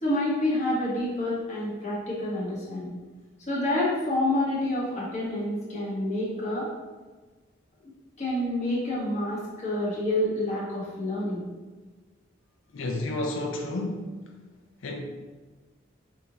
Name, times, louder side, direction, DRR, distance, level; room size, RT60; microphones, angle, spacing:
voice 1, 0.0-2.9 3.5-6.7 8.2-11.4, left 1 dB, 35° left, -7 dB, 1.3 m, -28 dB
voice 2, 12.7-14.2 14.8-15.0, left 2 dB, 85° left, 1 dB, 0.5 m, -31 dB
5.4 x 2.6 x 2.9 m, 1.3 s
head